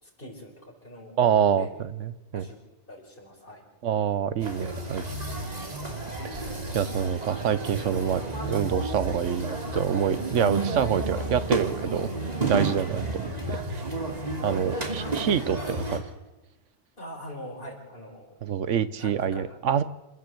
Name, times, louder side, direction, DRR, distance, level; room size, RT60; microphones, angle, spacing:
voice 1, 0.0-1.2 1.6-1.7 2.3-2.6 2.9-3.6 12.7-12.8 17.0-18.4 19.0-19.6, equal, 45° left, 0 dB, 5.1 m, -43 dB
voice 2, 1.2-2.5 3.8-5.0 6.3-6.5 6.7-12.1 12.4-13.8 14.4-16.0 18.4-19.8, right 8 dB, 85° right, 15 dB, 1.2 m, -26 dB
sound 1, 4.4-16.0, right 2 dB, 35° right, 3.0 m, -31 dB
27.5 x 13.0 x 7.7 m, 1.1 s
omnidirectional pair, 1.2 m